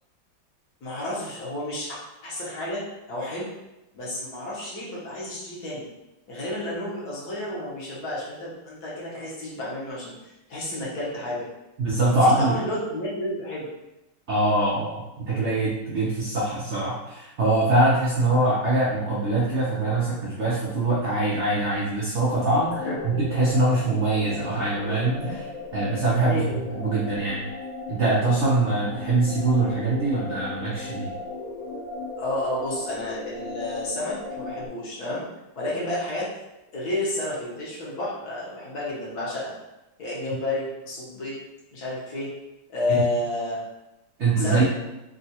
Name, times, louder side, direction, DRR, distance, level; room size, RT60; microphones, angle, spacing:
voice 1, 0.8-2.8 3.1-3.5 3.9-5.8 6.3-11.4 12.0-13.7 22.7-23.2 26.2-26.5 28.7-28.9 32.2-35.2 35.6-36.3 36.7-39.5 40.0-41.3 41.7-42.3 42.7-43.6 44.4-44.6, left 1 dB, 60° left, -6 dB, 1.3 m, -31 dB
voice 2, 11.8-12.6 14.3-22.8 23.0-25.5 25.7-26.4 26.7-27.4 27.9-31.1 42.9-43.1 44.2-44.6, right 2 dB, 85° right, -7 dB, 0.6 m, -23 dB
sound 1, 22.2-34.7, left 3 dB, 80° left, 0.8 m, -36 dB
3.6 x 2.4 x 2.7 m, 0.96 s
omnidirectional pair, 2.1 m